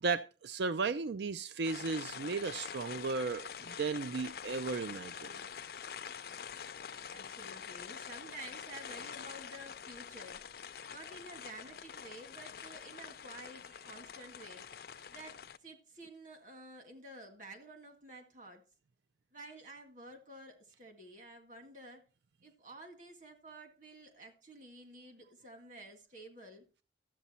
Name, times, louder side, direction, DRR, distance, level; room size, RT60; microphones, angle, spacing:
voice 1, 0.0-5.4, right 4 dB, 75° right, 0.4 m, -35 dB
sound 1, 1.6-15.6, left 7 dB, 55° left, 0.5 m, -46 dB
voice 2, 7.1-10.4 10.9-14.7 15.1-18.6 19.3-22.0 22.4-26.8, right 1 dB, 45° right, 1.9 m, -51 dB
12.5 x 8.3 x 4.3 m
head